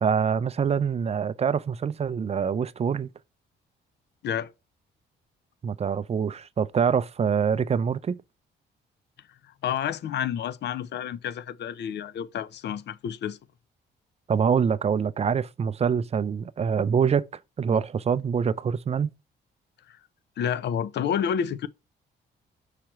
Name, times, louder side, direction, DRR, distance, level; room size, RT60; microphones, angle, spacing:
voice 1, 0.0-3.1 5.6-8.2 14.3-17.3 17.6-19.1, right 7 dB, 30° right, 0.5 m, -25 dB
voice 2, 9.6-13.4 19.9-20.0 20.4-21.7, left 8 dB, 60° left, 0.6 m, -29 dB
6.0 x 5.7 x 3.0 m
cardioid pair, 90°, 20 cm